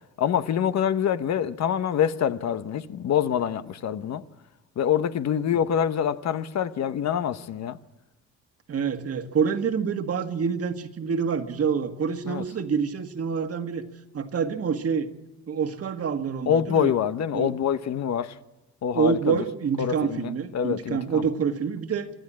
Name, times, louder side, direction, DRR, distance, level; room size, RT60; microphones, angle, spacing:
voice 1, 0.2-4.2 4.8-7.8 12.3-12.4 16.5-18.3 18.8-19.4 19.8-21.2, left 9 dB, 60° left, 1.0 m, -25 dB
voice 2, 8.7-13.8 14.1-15.1 15.5-16.9 17.3-17.6 18.9-22.1, right 6 dB, 50° right, 1.8 m, -27 dB
24.5 x 13.0 x 8.7 m
cardioid pair, 90°, 30 cm